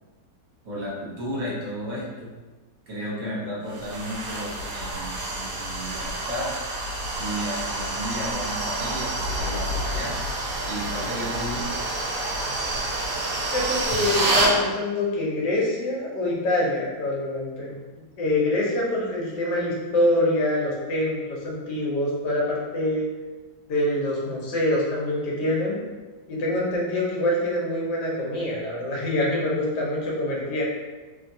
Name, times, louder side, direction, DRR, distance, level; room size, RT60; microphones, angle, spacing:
voice 1, 0.6-2.3 2.9-6.5 7.2-10.2 10.6-11.6, equal, 45° right, -6 dB, 1.1 m, -33 dB
sound 1, 3.7-14.6, right 2 dB, 70° right, 1.0 m, -28 dB
voice 2, 13.4-17.8 18.2-23.0 23.7-25.8 26.3-30.6, left 1 dB, 80° left, -4 dB, 1.4 m, -25 dB
3.0 x 2.7 x 2.6 m, 1.3 s
omnidirectional pair, 1.8 m